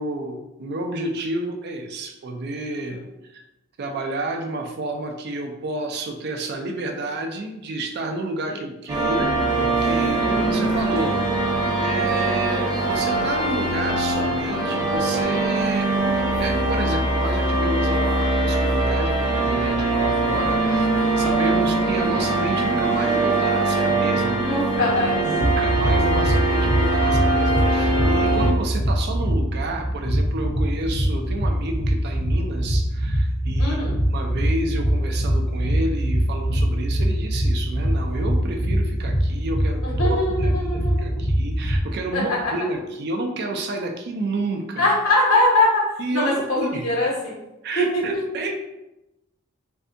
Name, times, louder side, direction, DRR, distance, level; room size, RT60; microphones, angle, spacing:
voice 1, 0.0-3.0 3.3-3.4 3.8-15.9 16.4-24.4 25.1-33.8 34.1-44.9 46.0-46.9 47.6-48.6, right 2 dB, 50° right, 4 dB, 0.4 m, -30 dB
sound 1, 8.9-28.5, right 2 dB, 20° right, 0.8 m, -22 dB
voice 2, 24.3-25.2 33.6-33.9 39.8-41.1 42.1-42.5 44.8-45.8 46.1-47.4 47.8-48.0, left 2 dB, 85° left, -4 dB, 1.2 m, -22 dB
sound 2, 25.4-41.8, equal, 15° left, 0.4 m, -23 dB
3.2 x 2.6 x 2.5 m, 0.93 s
head